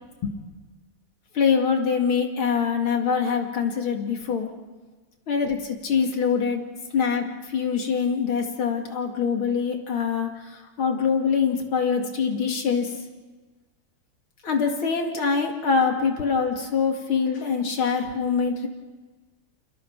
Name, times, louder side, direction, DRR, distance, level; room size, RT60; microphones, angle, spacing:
voice 1, 1.3-4.5 5.3-6.6 6.9-12.9 14.4-18.7, left 6 dB, 70° left, 3 dB, 3.1 m, -24 dB
28.5 x 28.5 x 4.7 m, 1.3 s
omnidirectional pair, 2.4 m